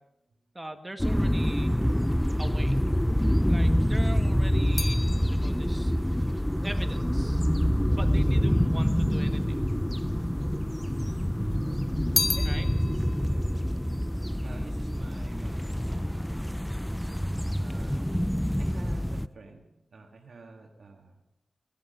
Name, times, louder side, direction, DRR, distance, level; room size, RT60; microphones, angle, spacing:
voice 1, 0.5-1.7 2.3-2.8 3.5-5.9 6.6-7.5 7.9-9.6 12.4-12.7 14.4-14.7, right 1 dB, 20° right, 6 dB, 1.8 m, -41 dB
sound 1, 1.0-19.3, equal, 5° left, 0.5 m, -26 dB
sound 2, 4.7-8.2 9.0-9.8 10.1-11.2 11.6-15.1 15.4-15.9, left 4 dB, 60° left, 1.0 m, -36 dB
voice 2, 12.3-13.7 14.4-16.5 17.6-18.2 18.6-19.6 19.9-21.1, right 4 dB, 70° right, 1 dB, 1.6 m, -51 dB
17.5 x 12.5 x 5.2 m, 0.93 s
cardioid pair, 60°, 0 cm